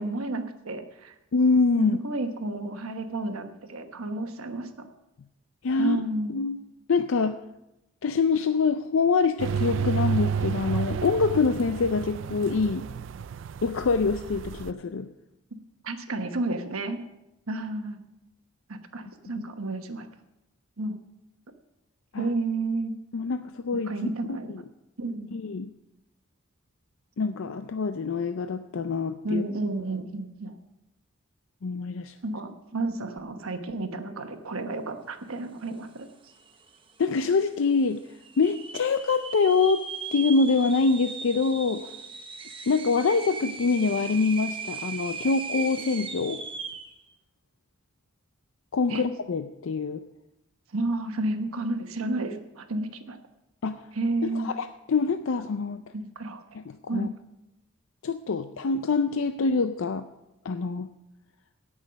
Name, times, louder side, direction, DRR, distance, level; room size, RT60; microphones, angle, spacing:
voice 1, 0.0-1.1 1.8-4.9 5.8-6.4 15.8-17.0 17.5-18.0 18.7-20.1 20.8-21.0 22.2-22.9 23.8-24.6 25.0-25.3 29.2-30.5 32.2-36.1 48.9-49.0 50.7-53.2 53.9-54.5 55.9-56.4 56.9-57.1, right 2 dB, 85° right, 7 dB, 1.2 m, -31 dB
voice 2, 1.3-2.0 5.6-6.0 6.3-6.6 6.9-7.3 8.0-12.8 13.6-15.1 19.4-19.5 22.1-22.3 23.1-23.9 25.3-25.7 27.2-29.4 31.6-32.1 37.0-38.0 38.4-39.8 40.1-41.9 42.7-46.4 48.7-50.0 53.6-53.8 54.2-55.8 56.9-57.1 58.0-60.0 60.4-60.9, left 4 dB, 70° left, 9 dB, 0.4 m, -25 dB
sound 1, 9.4-14.7, right 7 dB, 60° right, 0.3 m, -31 dB
sound 2, 36.0-36.1 36.3-36.9 37.4-37.5 38.2-46.9, right 5 dB, 25° right, 0.8 m, -38 dB
17.0 x 6.3 x 5.2 m, 0.92 s
head